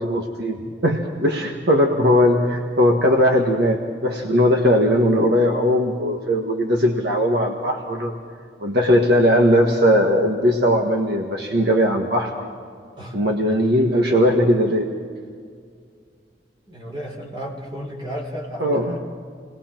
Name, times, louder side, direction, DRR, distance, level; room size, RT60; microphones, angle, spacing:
voice 1, 0.0-8.1 8.6-12.5 13.1-14.9 18.6-18.9, equal, 65° right, 1 dB, 1.6 m, -19 dB
voice 2, 13.0-13.3 16.7-19.0, equal, 30° right, -1 dB, 4.1 m, -33 dB
29.0 x 20.0 x 4.6 m, 2.1 s
head